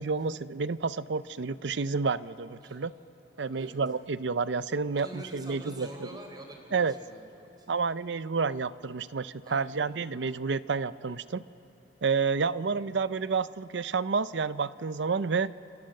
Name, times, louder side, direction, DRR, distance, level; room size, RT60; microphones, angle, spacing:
voice 1, 0.0-2.9 3.4-5.9 6.7-6.9 7.7-11.4 12.0-15.5, right 5 dB, 70° right, 16 dB, 0.6 m, -30 dB
voice 2, 3.4-3.8 4.9-7.7 9.4-9.9, right 1 dB, 25° right, 3 dB, 4.1 m, -46 dB
30.0 x 27.5 x 6.6 m, 3.0 s
head